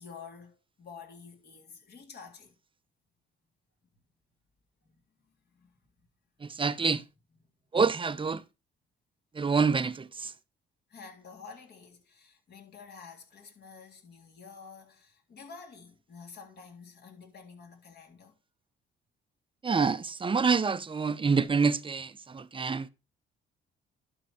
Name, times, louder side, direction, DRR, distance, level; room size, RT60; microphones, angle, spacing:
voice 1, 0.0-2.5 4.8-6.0 7.4-7.5 10.9-18.4, left 5 dB, 55° left, 3.3 m, -50 dB
voice 2, 6.4-7.0 7.7-8.4 9.3-10.3 19.6-22.9, right 5 dB, 25° right, 0.7 m, -27 dB
12.0 x 4.6 x 5.6 m
cardioid pair, 90°, 20 cm